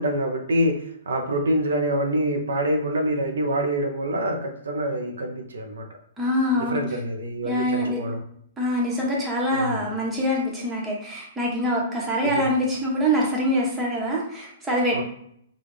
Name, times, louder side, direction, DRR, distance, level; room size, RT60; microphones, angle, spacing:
voice 1, 0.0-5.9 6.5-8.2 9.5-9.9 12.2-12.5 14.9-15.0, right 1 dB, 85° right, 4 dB, 0.6 m, -26 dB
voice 2, 6.2-6.8 7.4-8.0 8.6-15.0, equal, 10° right, -3 dB, 1.1 m, -24 dB
4.0 x 2.3 x 3.2 m, 0.69 s
hypercardioid pair, 140°, 0 cm